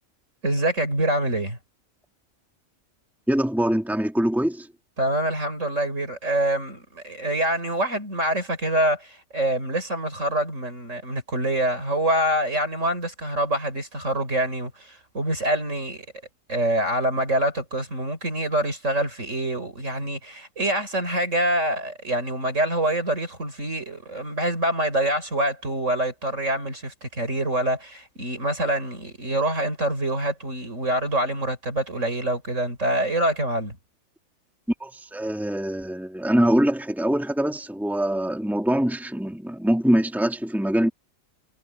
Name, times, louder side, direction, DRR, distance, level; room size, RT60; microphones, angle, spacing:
voice 1, 0.4-1.6 5.0-16.0 16.5-33.8, right 1 dB, 65° right, 6.8 m, -25 dB
voice 2, 3.3-4.7 34.8-40.9, right 1 dB, ahead, 2.8 m, -23 dB
omnidirectional pair, 1.4 m